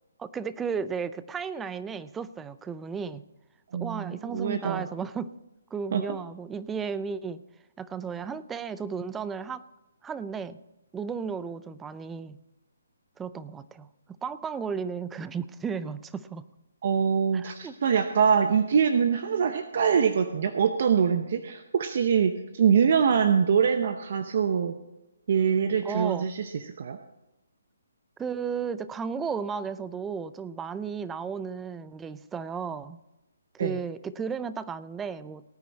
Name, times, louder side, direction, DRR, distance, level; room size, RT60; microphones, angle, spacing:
voice 1, 0.2-3.2 3.8-5.3 5.7-7.4 7.8-9.6 10.0-10.6 10.9-12.4 13.2-13.9 14.2-16.5 17.3-17.8 25.8-26.3 28.2-33.0 33.6-35.4, right 6 dB, 10° right, 15 dB, 0.4 m, -34 dB
voice 2, 3.7-4.9 5.9-6.0 16.8-24.8 25.3-26.5 26.8-27.0 33.6-33.8, right 7 dB, 55° right, 9 dB, 0.8 m, -24 dB
18.5 x 9.3 x 4.1 m, 1.0 s
hypercardioid pair, 155°, 0 cm